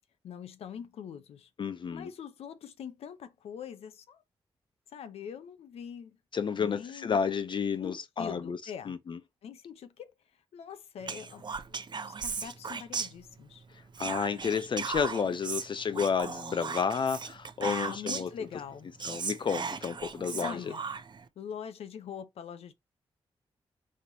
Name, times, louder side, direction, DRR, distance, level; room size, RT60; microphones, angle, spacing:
voice 1, 0.2-1.5 1.9-4.2 4.9-6.2 6.5-7.2 7.8-8.9 9.4-10.1 10.5-13.6 17.6-18.9 20.3-20.8 21.4-22.7, left 8 dB, 85° left, 0.7 m, -43 dB
voice 2, 1.6-2.1 6.3-8.6 8.9-9.2 14.0-18.3 19.0-20.7, left 6 dB, 55° left, 0.4 m, -31 dB
Whispering, 11.0-13.6 13.9-18.4 18.7-18.8 19.0-21.2, right 5 dB, 50° right, 0.7 m, -37 dB
4.3 x 3.0 x 4.0 m
cardioid pair, 50°, 10 cm